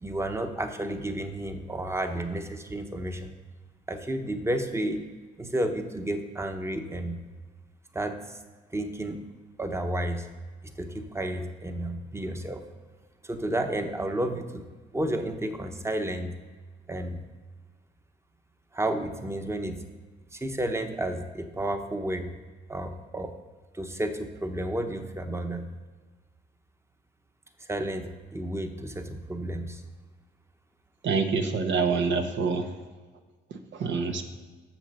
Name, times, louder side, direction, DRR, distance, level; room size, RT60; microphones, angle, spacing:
voice 1, 0.0-3.3 3.9-5.0 5.4-7.3 7.9-8.4 8.7-9.2 9.6-10.3 10.8-12.6 13.2-14.7 14.9-16.4 16.9-17.2 18.7-19.8 20.3-22.3 22.7-23.3 23.7-25.7 27.6-29.8, right 1 dB, 15° right, 7 dB, 1.0 m, -31 dB
voice 2, 31.0-32.7 33.5-34.3, right 4 dB, 70° right, 6 dB, 1.0 m, -26 dB
7.2 x 6.5 x 6.7 m, 1.4 s
cardioid pair, 90°, 20 cm